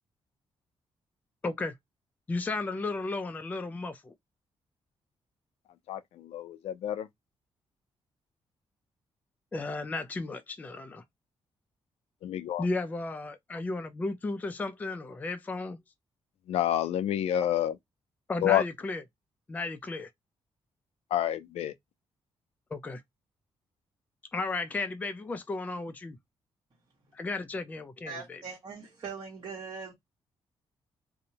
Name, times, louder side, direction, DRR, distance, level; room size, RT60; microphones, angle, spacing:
voice 1, 1.4-1.7 2.3-4.1 9.5-11.0 12.6-15.8 18.3-19.0 19.5-20.1 22.7-23.0 24.3-26.2 27.1-28.4, left 3 dB, 15° left, 0.3 m, -34 dB
voice 2, 5.9-7.1 12.2-12.7 16.5-17.8 18.4-18.6 21.1-21.7, left 11 dB, 90° left, 0.4 m, -28 dB
voice 3, 28.1-29.9, right 5 dB, 50° right, 1.2 m, -41 dB
2.6 x 2.1 x 2.7 m
cardioid pair, 140°, 10 cm